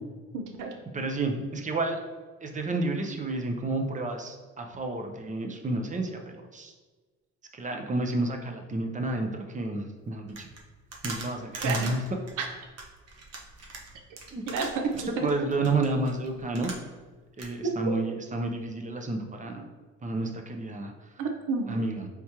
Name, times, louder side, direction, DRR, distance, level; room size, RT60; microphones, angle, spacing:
voice 1, 0.3-0.7 11.6-12.0 12.4-12.5 14.5-15.3 17.6-17.9 21.2-21.8, right 4 dB, 80° right, 3 dB, 0.7 m, -30 dB
voice 2, 0.9-2.0 2.4-6.7 7.5-10.5 11.0-12.0 14.3-14.4 15.2-16.7 17.4-19.6 20.0-20.9 21.7-22.1, right 2 dB, 25° right, 3 dB, 0.6 m, -30 dB
sound 1, 10.3-17.1 17.4-17.5, right 3 dB, 55° right, 0.9 m, -41 dB
4.2 x 3.6 x 2.9 m, 1.3 s
cardioid pair, 90°, 30 cm